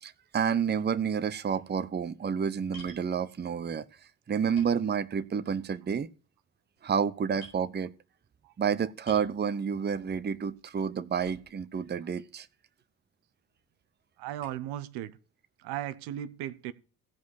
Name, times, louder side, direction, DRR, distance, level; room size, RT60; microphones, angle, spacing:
voice 1, 0.0-3.8 4.3-6.1 6.8-7.9 8.6-12.5, right 7 dB, 25° right, 0.8 m, -29 dB
sound 1, 2.7-3.1 4.0-4.1 4.6-5.4 5.8-6.1 6.8-7.0 7.4-7.6 9.0-9.4 11.2-11.7 12.5-12.6 14.4-14.7, left 1 dB, 90° left, 5.1 m, -50 dB
voice 2, 14.2-15.1 15.6-16.7, right 12 dB, 70° right, 0.9 m, -36 dB
15.0 x 5.1 x 6.5 m
hypercardioid pair, 50°, 41 cm